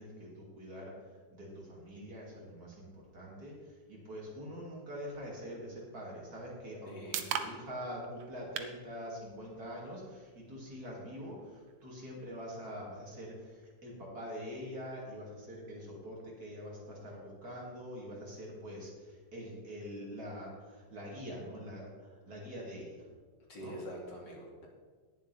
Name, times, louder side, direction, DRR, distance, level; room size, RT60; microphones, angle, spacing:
voice 1, 0.0-23.0 23.5-23.7, equal, 50° right, -3 dB, 3.1 m, -45 dB
sound 1, 6.4-20.3, right 8 dB, 85° right, 1.5 m, -48 dB
voice 2, 6.9-7.2 23.5-24.7, equal, 70° left, -2 dB, 3.0 m, -45 dB
18.5 x 7.5 x 3.4 m, 1.5 s
omnidirectional pair, 2.0 m